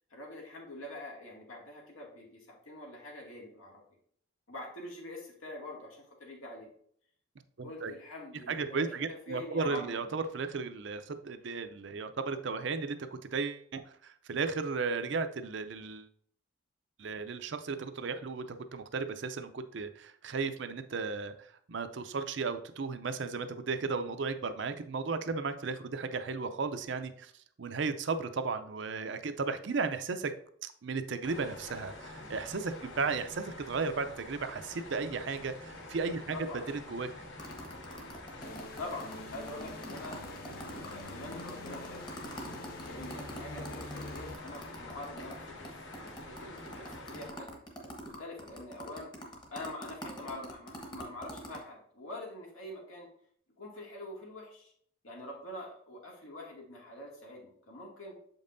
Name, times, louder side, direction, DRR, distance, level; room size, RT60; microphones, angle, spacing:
voice 1, 0.1-3.8 4.5-6.7 7.6-9.0 9.3-10.1 36.5-36.7 38.8-40.2 40.8-42.0 42.8-47.5 48.0-49.1 49.5-53.1 53.6-54.7 55.0-58.2, left 1 dB, 85° left, -2 dB, 2.2 m, -45 dB
voice 2, 7.6-7.9 8.5-16.1 17.0-27.3 27.6-30.3 30.6-36.4 36.7-37.1, right 4 dB, 60° right, 10 dB, 0.5 m, -35 dB
sound 1, 31.2-47.3, left 2 dB, 65° left, 1.1 m, -47 dB
sound 2, 37.4-45.4 45.6-45.7 45.9-51.6, equal, 20° left, 1.0 m, -44 dB
sound 3, 38.4-44.3, left 2 dB, 45° left, 0.5 m, -47 dB
7.4 x 5.3 x 2.6 m, 0.63 s
head